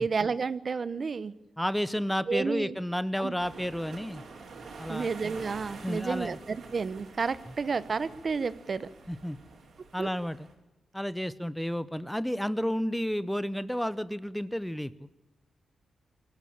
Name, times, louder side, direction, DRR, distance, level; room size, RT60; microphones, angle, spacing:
voice 1, 0.0-1.3 2.3-2.8 3.2-3.3 4.9-8.9 10.0-10.1, right 5 dB, 45° right, 17 dB, 0.9 m, -31 dB
voice 2, 1.6-4.2 4.8-5.1 5.8-6.4 9.1-9.4 9.9-10.5 10.9-14.9, equal, 5° left, 17 dB, 0.7 m, -31 dB
sound 1, 3.4-10.5, right 3 dB, 65° right, 5.4 m, -47 dB
23.5 x 14.5 x 8.5 m, 1.0 s
cardioid pair, 110°, 0 cm